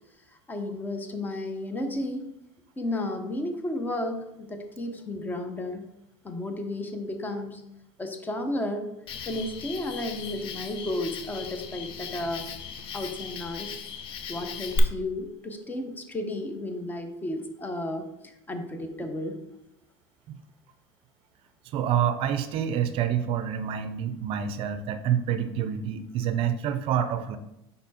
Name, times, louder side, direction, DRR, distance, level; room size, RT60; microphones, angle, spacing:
voice 1, 0.5-2.3 2.8-5.8 6.2-7.6 8.0-8.9 9.3-12.5 12.9-13.8 14.3-19.4, left 1 dB, 15° left, 6 dB, 0.8 m, -33 dB
Cricket, 9.1-14.8, left 6 dB, 45° left, 0.7 m, -38 dB
voice 2, 21.7-27.4, right 9 dB, 45° right, 11 dB, 0.5 m, -27 dB
5.3 x 4.2 x 4.2 m, 0.85 s
supercardioid pair, 130°, 13 cm